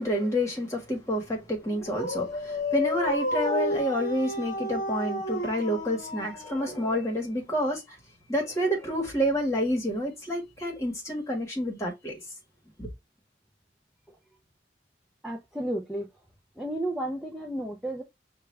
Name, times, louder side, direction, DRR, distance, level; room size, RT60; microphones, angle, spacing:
voice 1, 0.0-7.8 8.3-12.2 12.8-12.9, equal, 15° left, 1.4 m, -29 dB
Dog, 1.6-7.3, left 1 dB, 45° left, 1.0 m, -32 dB
voice 2, 15.2-16.1 16.6-18.0, right 1 dB, ahead, 0.5 m, -32 dB
5.8 x 2.4 x 3.2 m
head